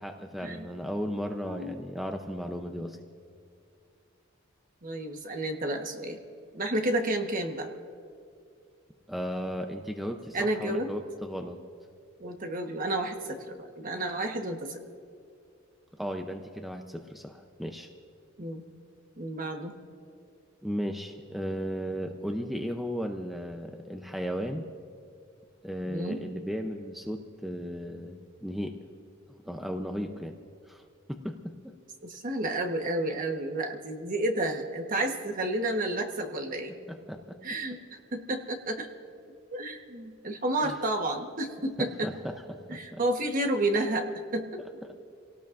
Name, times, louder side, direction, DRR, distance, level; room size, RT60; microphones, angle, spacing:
voice 1, 0.0-3.0 9.1-11.6 15.9-17.9 20.6-24.6 25.6-28.8 29.4-30.4 30.7-30.8 31.1-31.7 36.9-37.4 40.6-40.8 41.8-43.0 44.8-44.9, equal, ahead, 4 dB, 0.6 m, -35 dB
voice 2, 1.4-1.8 4.8-6.2 6.5-7.7 10.3-10.9 12.2-14.8 18.4-18.6 19.2-19.7 25.8-26.2 32.0-36.7 37.4-37.8 38.1-38.9 39.5-42.1 42.7-44.5, right 1 dB, 45° right, 3 dB, 1.3 m, -31 dB
29.0 x 18.0 x 2.6 m, 2.3 s
head